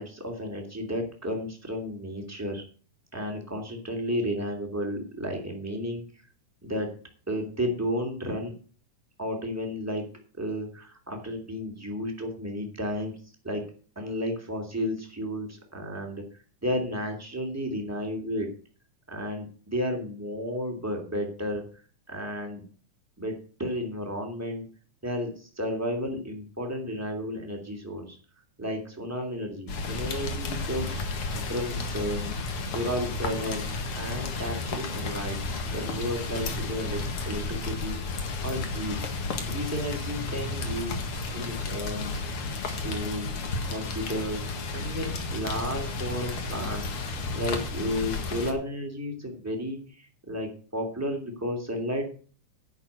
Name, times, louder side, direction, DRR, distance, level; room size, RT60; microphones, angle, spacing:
voice 1, 0.0-2.6 3.1-6.0 6.6-6.9 7.3-8.5 9.2-10.0 10.4-13.1 13.4-13.6 14.0-16.2 16.6-18.5 19.1-21.6 22.1-22.6 23.2-24.7 25.0-28.2 28.6-32.3 32.7-33.7 34.0-38.0 38.4-39.0 39.5-41.0 41.3-43.3 43.7-46.9 47.3-52.1, equal, 5° right, 2 dB, 2.1 m, -33 dB
Rain, 29.7-48.5, left 3 dB, 50° left, 2.2 m, -32 dB
10.5 x 6.7 x 7.8 m, 0.41 s
omnidirectional pair, 3.6 m